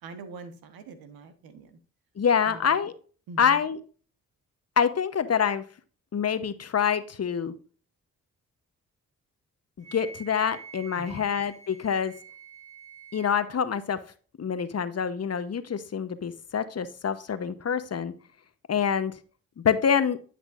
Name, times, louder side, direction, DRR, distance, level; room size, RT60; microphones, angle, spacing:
voice 1, 0.0-1.8 2.4-2.8 3.3-3.6 10.9-11.2, right 4 dB, 75° right, 9 dB, 1.3 m, -44 dB
voice 2, 2.2-2.9 3.4-3.8 4.8-5.6 6.1-7.5 9.8-12.1 13.1-14.0 14.4-18.1 18.7-19.1 19.6-20.2, left 7 dB, 45° left, 13 dB, 0.9 m, -26 dB
Wind instrument woodwind instrument, 9.8-13.5, right 5 dB, 20° right, 3.1 m, -47 dB
10.0 x 5.9 x 2.5 m, 0.39 s
supercardioid pair, 45°, 36 cm